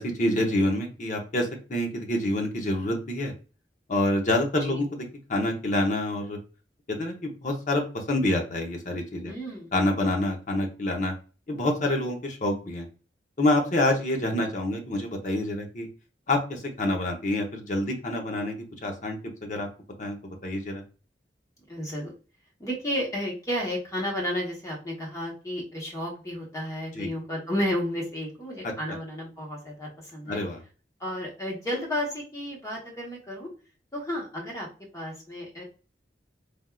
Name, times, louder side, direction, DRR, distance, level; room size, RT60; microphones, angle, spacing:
voice 1, 0.0-3.3 3.9-5.0 5.3-6.4 6.9-9.3 9.7-11.1 11.5-12.9 13.4-15.9 16.3-18.6 18.8-19.7 20.0-20.8 26.9-27.1 28.9-29.0 30.3-30.6, left 1 dB, 45° left, 3 dB, 0.8 m, -27 dB
voice 2, 9.3-9.7 21.7-22.1 22.6-30.4 31.0-33.5 33.9-34.7 34.9-35.6, equal, 20° left, -2 dB, 1.1 m, -32 dB
3.4 x 2.6 x 2.3 m, 0.35 s
head